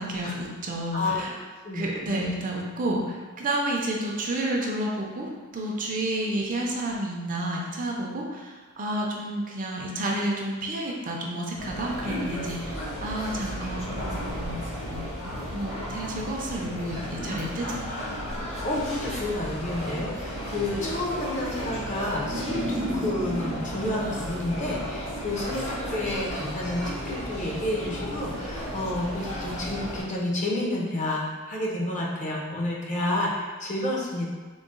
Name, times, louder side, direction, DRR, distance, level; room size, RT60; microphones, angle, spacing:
voice 1, 0.0-1.4 1.7-14.6 14.9-15.1 15.5-17.8, right 1 dB, 40° right, -1 dB, 0.5 m, -30 dB
voice 2, 0.9-1.2 1.6-2.3 12.0-12.6 18.6-22.6 22.9-34.3, left 1 dB, 35° left, -3 dB, 0.7 m, -30 dB
sound 1, 11.6-30.0, equal, 60° left, 1.4 m, -34 dB
sound 2, 22.2-25.2, right 1 dB, 90° right, 0.7 m, -34 dB
3.8 x 2.0 x 3.7 m, 1.4 s
head